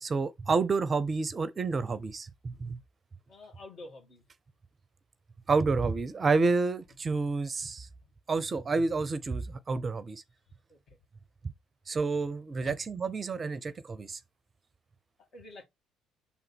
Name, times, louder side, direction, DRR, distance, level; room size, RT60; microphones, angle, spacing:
voice 1, 0.0-2.8 5.5-7.9 8.3-10.2 11.9-14.2, right 4 dB, 35° right, 0.6 m, -29 dB
voice 2, 3.3-4.2 10.7-11.0 12.6-12.8 15.2-15.6, left 2 dB, 50° left, 2.4 m, -48 dB
5.7 x 3.9 x 4.3 m
hypercardioid pair, 55°, 0 cm